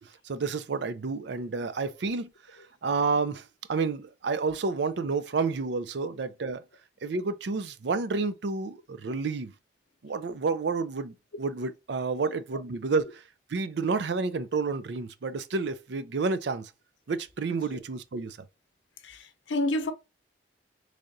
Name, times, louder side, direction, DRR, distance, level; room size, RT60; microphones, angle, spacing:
voice 1, 0.0-6.6 7.0-9.5 10.0-13.2 13.5-16.7 17.1-18.4, right 4 dB, 70° right, 0.5 m, -30 dB
voice 2, 19.0-19.9, left 1 dB, 85° left, 0.7 m, -30 dB
3.7 x 3.3 x 2.6 m
head